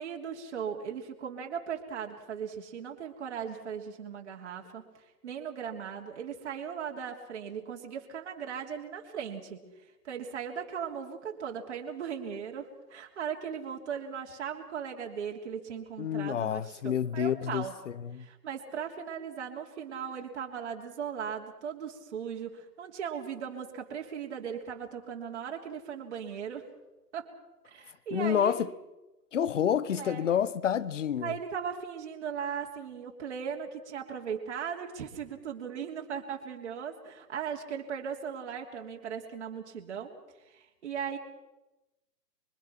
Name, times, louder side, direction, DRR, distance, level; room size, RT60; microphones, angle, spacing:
voice 1, 0.0-4.8 5.2-9.6 10.0-17.7 18.2-26.6 27.1-27.3 27.6-28.5 30.0-30.3 31.2-40.1 40.5-41.2, right 7 dB, 45° right, 3.2 m, -38 dB
voice 2, 16.0-17.7 18.0-18.2 28.1-28.7 29.3-31.4, left 9 dB, 50° left, 1.0 m, -28 dB
25.0 x 24.5 x 5.9 m
hypercardioid pair, 170°, 49 cm